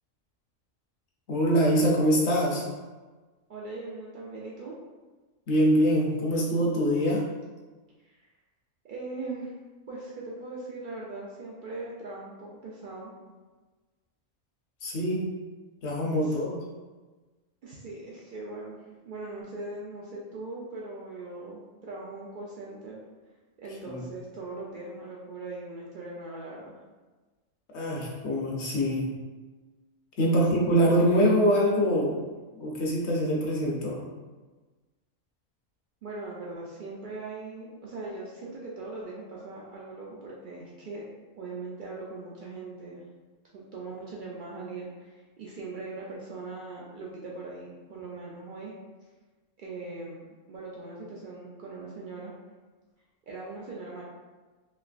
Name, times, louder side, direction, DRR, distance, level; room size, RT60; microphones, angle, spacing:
voice 1, 1.3-2.6 5.5-7.2 14.8-15.3 15.8-16.5 23.9-24.0 27.7-29.0 30.2-32.2 32.6-34.0, equal, 60° left, -3 dB, 0.9 m, -24 dB
voice 2, 3.5-4.7 8.1-8.2 8.8-9.5 9.9-13.1 16.2-16.4 17.6-23.0 23.6-26.7 30.4-30.5 36.0-41.0 41.4-43.0 43.5-48.7 49.6-52.3 53.2-54.0, right 3 dB, 70° right, -4 dB, 0.4 m, -40 dB
3.2 x 2.9 x 2.4 m, 1.3 s
omnidirectional pair, 1.4 m